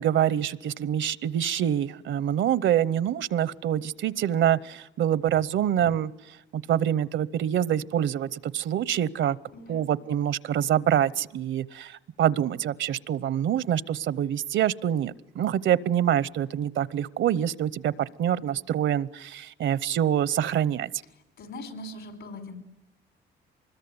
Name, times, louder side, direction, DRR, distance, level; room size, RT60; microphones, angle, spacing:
voice 1, 0.0-6.1 6.5-9.4 9.7-20.9, right 10 dB, 70° right, 20 dB, 0.9 m, -26 dB
voice 2, 9.5-9.9 21.4-22.6, left 1 dB, 75° left, 9 dB, 4.9 m, -40 dB
24.5 x 21.0 x 9.6 m, 0.90 s
cardioid pair, 90°, 20 cm